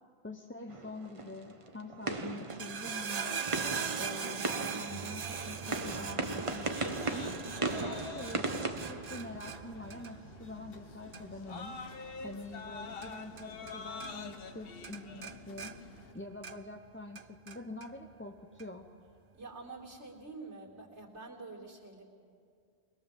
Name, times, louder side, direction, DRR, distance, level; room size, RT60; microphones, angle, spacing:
voice 1, 0.2-3.5 4.0-7.3 7.7-11.8 12.2-15.8 16.1-18.9, left 2 dB, 15° left, 4 dB, 0.7 m, -45 dB
sound 1, 0.7-9.8, right 2 dB, 30° right, 1.1 m, -38 dB
sound 2, 2.4-13.7 14.0-14.6 14.8-16.8 17.1-17.9 18.6-18.7, right 7 dB, 45° right, 0.6 m, -41 dB
sound 3, 5.2-16.1, left 4 dB, 60° left, 1.2 m, -47 dB
voice 2, 19.3-22.0, right 3 dB, 80° right, 0 dB, 3.2 m, -47 dB
22.5 x 21.5 x 7.2 m, 2.3 s
omnidirectional pair, 1.1 m